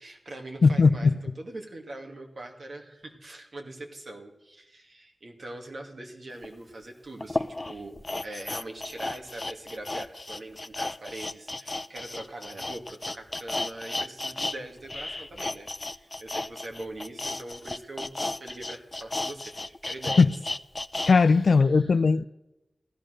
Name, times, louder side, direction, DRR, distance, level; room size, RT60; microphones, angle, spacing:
voice 1, 0.0-15.7 15.9-20.3 21.1-21.4, right 1 dB, 70° right, 2.5 m, -42 dB
voice 2, 0.6-1.2 20.2-20.3 21.1-22.2, left 4 dB, 80° left, 0.5 m, -19 dB
sound 1, 6.4-6.5 7.2-14.6 14.8-21.1 21.5-21.6, left 2 dB, 35° left, 0.6 m, -34 dB
16.0 x 12.5 x 6.5 m
wide cardioid pair, 60°, 0 cm